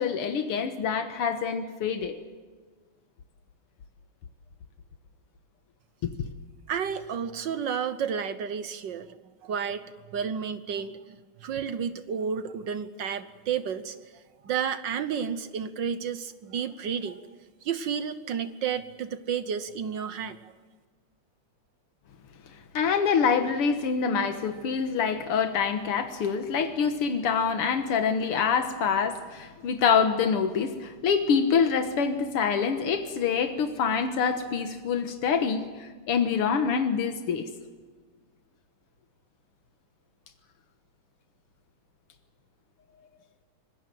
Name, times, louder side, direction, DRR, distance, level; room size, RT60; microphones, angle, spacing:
voice 1, 0.0-2.2 6.0-6.1 22.7-37.5, left 6 dB, 85° left, 7 dB, 2.2 m, -26 dB
voice 2, 6.7-9.2 9.4-9.8 10.1-14.0 14.4-17.2 17.6-20.5, right 7 dB, 60° right, 12 dB, 1.6 m, -31 dB
25.5 x 21.0 x 7.7 m, 1.4 s
omnidirectional pair, 2.4 m